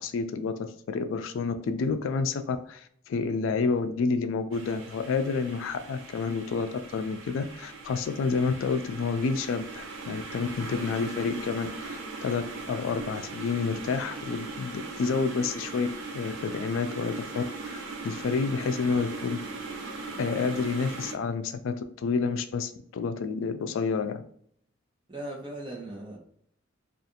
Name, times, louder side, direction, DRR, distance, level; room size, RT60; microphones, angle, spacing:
voice 1, 0.0-19.4 20.2-24.2, left 4 dB, 80° left, 8 dB, 0.3 m, -29 dB
sound 1, 4.5-21.1, right 3 dB, 80° right, 0.5 m, -40 dB
voice 2, 25.1-26.2, right 1 dB, 25° right, -2 dB, 0.8 m, -38 dB
2.4 x 2.4 x 2.7 m, 0.64 s
head